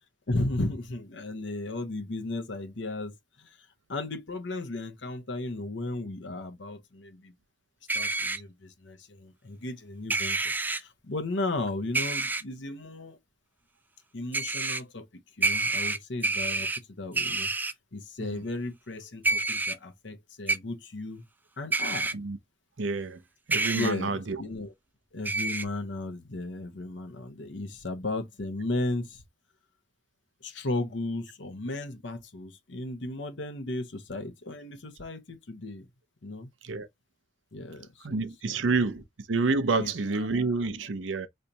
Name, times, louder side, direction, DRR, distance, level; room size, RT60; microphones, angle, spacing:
voice 1, 0.3-3.6 3.9-7.3 7.9-10.4 10.7-13.2 14.1-15.1 15.4-16.7 17.0-17.5 17.9-21.2 21.6-22.2 23.8-24.7 25.1-29.2 30.4-35.9 36.2-36.5 37.5-38.8 39.8-40.5, left 2 dB, 70° left, 0.9 m, -35 dB
sound 1, 7.9-8.4 10.1-10.8 11.9-12.4 14.3-14.8 15.4-16.8 17.1-17.7 19.2-19.7 20.5-20.6 21.7-22.1 23.5-23.9 25.3-25.7, right 3 dB, 10° right, 0.3 m, -28 dB
voice 2, 22.8-23.2 23.5-24.4 36.6-36.9 38.0-39.0 39.3-41.3, right 3 dB, 85° right, 0.7 m, -28 dB
5.2 x 3.3 x 2.8 m
head